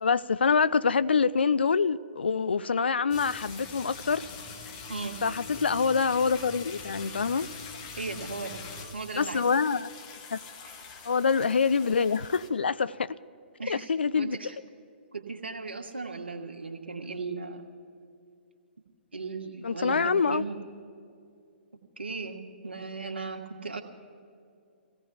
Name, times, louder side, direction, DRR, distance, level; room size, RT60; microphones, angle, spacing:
voice 1, 0.0-4.3 5.2-7.5 9.2-9.9 10.3-10.4 11.0-13.2 13.7-14.4 19.6-20.4, left 5 dB, 70° left, 0.4 m, -25 dB
sound 1, 3.1-12.5, left 4 dB, 35° left, 1.5 m, -43 dB
voice 2, 8.0-8.6 8.9-9.4 13.6-14.6 15.1-17.6 19.1-20.6 22.0-23.8, right 4 dB, 75° right, 1.4 m, -37 dB
27.0 x 16.5 x 2.3 m
figure-of-eight pair, 120°, 6 cm